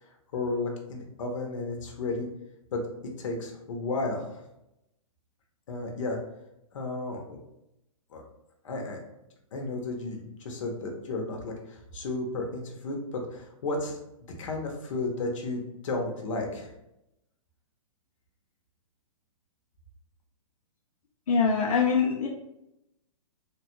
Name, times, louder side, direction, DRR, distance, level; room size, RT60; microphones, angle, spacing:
voice 1, 0.0-2.3 2.7-2.8 3.2-4.4 5.7-6.2 6.7-7.4 8.1-8.2 8.6-9.0 9.5-14.0 14.4-16.7, left 2 dB, 60° left, 1 dB, 0.8 m, -33 dB
voice 2, 21.3-22.3, left 5 dB, 85° left, -1 dB, 0.5 m, -23 dB
3.2 x 2.2 x 3.0 m, 0.86 s
hypercardioid pair, 150°, 18 cm